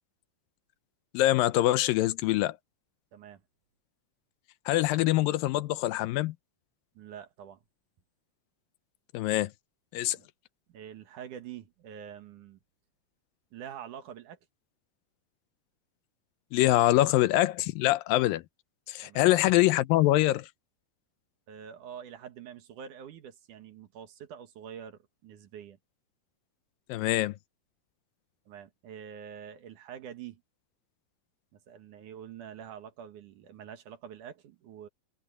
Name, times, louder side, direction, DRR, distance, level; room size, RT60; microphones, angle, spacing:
voice 1, 1.1-2.6 4.7-6.3 9.1-9.5 9.9-10.2 16.5-18.4 18.9-20.5 26.9-27.3, left 16 dB, 80° left, 2.4 m, -24 dB
voice 2, 3.1-3.4 7.0-7.6 10.1-10.3 10.7-12.6 13.5-14.4 19.0-19.3 21.5-25.8 28.5-30.4 31.5-34.9, right 8 dB, 65° right, 2.8 m, -46 dB
omnidirectional pair, 4.1 m